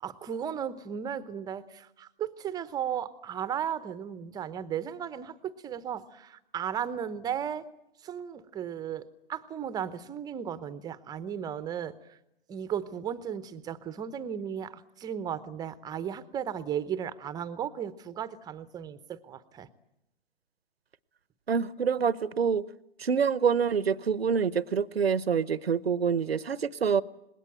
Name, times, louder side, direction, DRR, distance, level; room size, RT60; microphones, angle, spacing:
voice 1, 0.0-7.7 8.0-12.2 12.5-19.7, right 8 dB, 15° right, 0.9 m, -35 dB
voice 2, 21.5-22.6 23.0-27.0, right 6 dB, 85° right, 0.9 m, -26 dB
26.5 x 20.5 x 9.1 m
hypercardioid pair, 130°, 30 cm